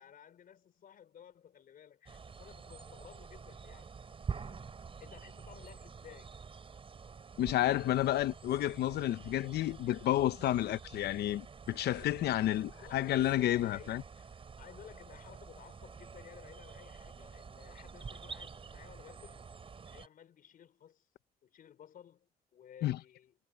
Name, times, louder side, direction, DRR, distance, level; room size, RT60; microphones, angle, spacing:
voice 1, 0.0-3.9 4.3-4.7 5.0-6.3 9.1-9.7 10.6-10.8 12.6-13.1 13.6-19.5 19.9-21.1 21.4-23.5, left 9 dB, 60° left, 4.5 m, -56 dB
sound 1, 2.1-20.1, right 5 dB, 35° right, 4.7 m, -48 dB
voice 2, 7.4-14.0 22.8-23.0, left 13 dB, 90° left, 0.8 m, -31 dB
cardioid pair, 130°, 16 cm